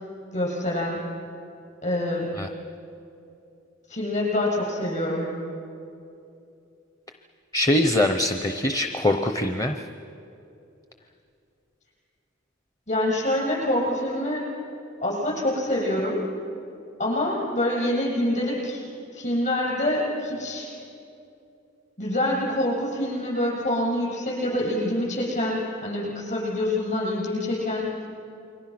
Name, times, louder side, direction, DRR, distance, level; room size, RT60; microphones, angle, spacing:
voice 1, 0.3-1.0 1.8-2.3 3.9-5.3 12.9-14.5 15.0-16.2 17.0-18.8 19.1-20.7 22.0-27.9, left 1 dB, 40° left, -3 dB, 7.5 m, -26 dB
voice 2, 7.5-9.8, left 1 dB, 15° left, 6 dB, 0.7 m, -23 dB
29.0 x 23.5 x 6.0 m, 2.7 s
head